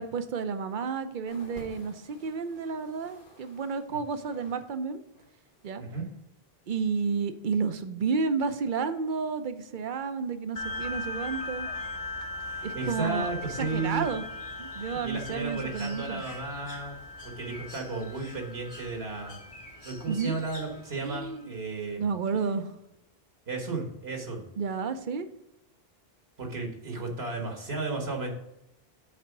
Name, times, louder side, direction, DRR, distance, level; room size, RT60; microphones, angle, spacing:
voice 1, 0.0-5.0 5.6-5.8 6.7-11.7 12.6-13.3 13.6-14.2 14.6-16.2 20.1-20.4 21.0-21.5 22.0-22.8 24.6-25.3, right 5 dB, 55° right, 10 dB, 0.8 m, -31 dB
sound 1, 1.3-4.7 5.0-5.9 6.6-6.7, left 1 dB, 55° left, 1.4 m, -53 dB
sound 2, 10.6-21.4, left 2 dB, 35° left, 1.1 m, -39 dB
voice 2, 12.4-14.1 14.8-17.0 17.2-19.4 19.8-22.0 23.5-24.5 26.4-28.3, right 3 dB, 75° right, 2 dB, 1.6 m, -34 dB
Bird, 13.2-21.3, left 1 dB, 75° left, 2.1 m, -50 dB
7.5 x 4.2 x 5.9 m, 0.85 s
omnidirectional pair, 1.1 m